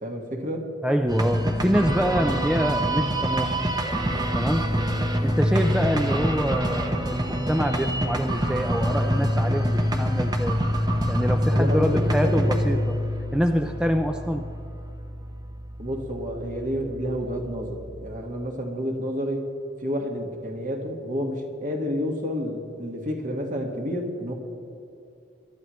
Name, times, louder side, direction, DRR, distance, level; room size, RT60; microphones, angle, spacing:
voice 1, 0.0-0.6 11.5-12.9 15.8-19.5 19.8-24.3, equal, 45° right, 1 dB, 1.7 m, -30 dB
voice 2, 0.8-3.6 4.3-4.6 5.2-10.6 11.1-12.9 13.3-14.5, equal, 5° right, 4 dB, 0.5 m, -25 dB
sound 1, 1.1-18.2, equal, 20° right, 0.8 m, -26 dB
22.5 x 11.5 x 3.1 m, 2.6 s
head